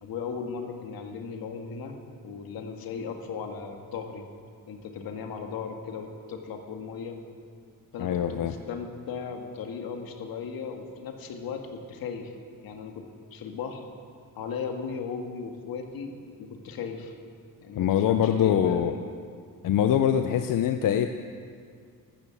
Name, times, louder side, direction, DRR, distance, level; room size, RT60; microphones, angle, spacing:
voice 1, 0.0-4.3 4.7-7.2 7.9-12.3 12.6-13.9 14.4-17.1 17.6-19.1 20.1-20.2, left 5 dB, 80° left, 4 dB, 1.9 m, -37 dB
voice 2, 8.0-8.5 17.8-18.9 19.6-21.1, left 9 dB, 65° left, 8 dB, 0.7 m, -23 dB
14.0 x 13.0 x 7.3 m, 2.2 s
cardioid pair, 155°, 35 cm